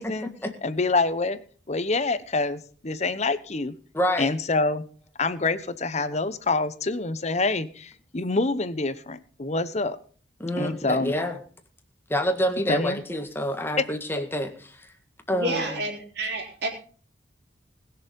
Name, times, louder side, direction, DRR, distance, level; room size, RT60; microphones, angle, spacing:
voice 1, 0.0-0.5 3.9-4.3 10.4-11.4 12.1-14.9 15.3-15.8, equal, 10° left, 5 dB, 1.8 m, -28 dB
voice 2, 0.6-1.4 1.7-3.7 4.2-4.8 5.2-10.0 10.6-11.1 12.7-13.0 13.8-13.9, left 3 dB, 35° left, 14 dB, 0.9 m, -26 dB
voice 3, 15.3-16.7, right 1 dB, 60° right, 1 dB, 4.1 m, -29 dB
20.0 x 6.9 x 5.4 m, 0.43 s
head